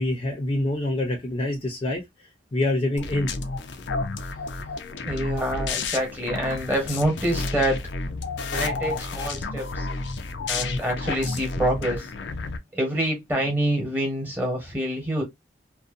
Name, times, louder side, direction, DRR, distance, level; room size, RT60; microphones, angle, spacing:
voice 1, 0.0-3.3, left 1 dB, 30° left, 0.5 m, -26 dB
sound 1, 3.0-12.6, left 3 dB, 85° left, 0.5 m, -31 dB
voice 2, 5.0-7.8 8.5-9.9 10.5-12.1 12.7-15.2, right 1 dB, 10° right, 1.0 m, -26 dB
2.6 x 2.1 x 2.4 m
head